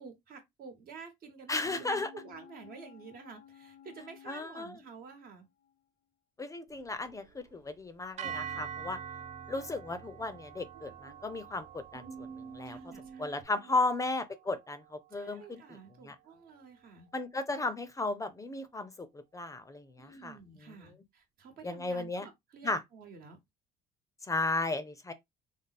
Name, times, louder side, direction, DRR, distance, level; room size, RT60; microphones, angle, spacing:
voice 1, 0.0-5.5 12.6-13.8 15.1-17.1 20.0-23.4, right 5 dB, 60° right, 1.2 m, -50 dB
sound 1, 1.5-5.3 5.6-5.7, left 10 dB, 70° left, 0.5 m, -55 dB
voice 2, 1.5-2.1 4.3-4.7 6.4-9.0 9.5-12.8 13.2-15.6 16.0-16.2 17.1-20.4 20.6-20.7 21.6-22.3 22.6-22.8 24.3-25.1, left 2 dB, 20° left, 0.5 m, -35 dB
sound 2, 6.7-13.4, right 5 dB, 80° right, 1.2 m, -51 dB
sound 3, 8.2-16.4, right 9 dB, 45° right, 0.4 m, -46 dB
3.4 x 2.0 x 4.1 m
cardioid pair, 110°, 17 cm